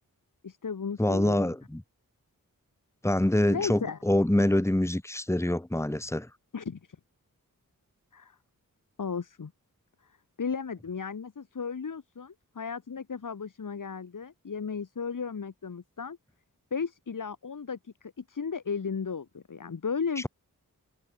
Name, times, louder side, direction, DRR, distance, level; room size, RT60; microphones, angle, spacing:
voice 1, 0.4-1.5 3.5-4.0 6.5-7.0 8.1-8.4 9.0-9.5 10.4-16.2 16.7-20.3, left 5 dB, 65° left, 1.9 m, -35 dB
voice 2, 1.0-1.8 3.0-6.3, left 1 dB, 10° left, 2.1 m, -25 dB
wide cardioid pair, 65°, 34 cm